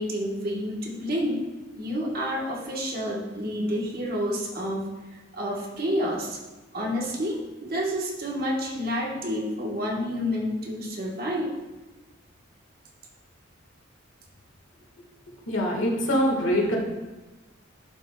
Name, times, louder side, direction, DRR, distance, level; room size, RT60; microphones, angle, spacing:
voice 1, 0.0-1.5 1.7-6.4 6.7-11.5, equal, 45° right, -2 dB, 1.1 m, -29 dB
voice 2, 15.5-16.8, equal, 70° left, -1 dB, 1.4 m, -23 dB
11.5 x 4.6 x 2.2 m, 1.1 s
head